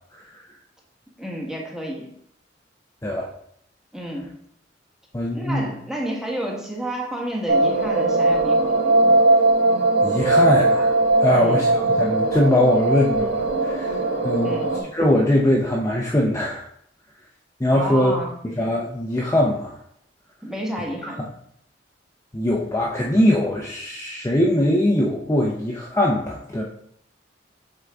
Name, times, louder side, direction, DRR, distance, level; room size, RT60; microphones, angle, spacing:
voice 1, 1.2-2.1 3.9-4.3 5.3-9.0 11.3-11.7 14.4-14.7 17.7-18.4 20.4-21.2, right 1 dB, 5° right, -1 dB, 1.2 m, -30 dB
voice 2, 5.1-5.7 10.0-13.9 14.2-14.6 14.9-16.7 17.6-18.1 18.4-19.7 22.3-26.6, left 1 dB, 15° left, -3 dB, 0.6 m, -21 dB
sound 1, 7.5-14.8, right 2 dB, 85° right, 1.2 m, -19 dB
7.9 x 3.9 x 3.5 m, 0.70 s
head